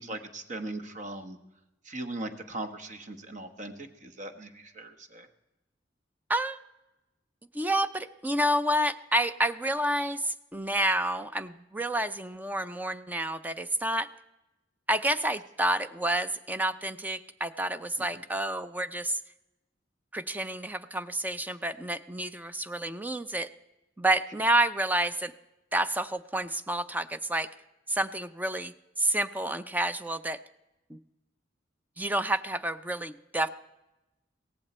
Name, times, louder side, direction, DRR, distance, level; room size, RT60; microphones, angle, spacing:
voice 1, 0.0-1.4 1.8-5.3 18.1-18.2, right 2 dB, 40° right, 8 dB, 1.2 m, -39 dB
voice 2, 6.3-6.6 7.5-14.1 14.9-19.2 20.1-23.5 24.0-25.3 25.7-27.5 27.9-30.4 30.9-31.0 32.0-33.5, right 1 dB, 10° right, 12 dB, 0.5 m, -29 dB
17.0 x 15.0 x 4.3 m, 0.97 s
head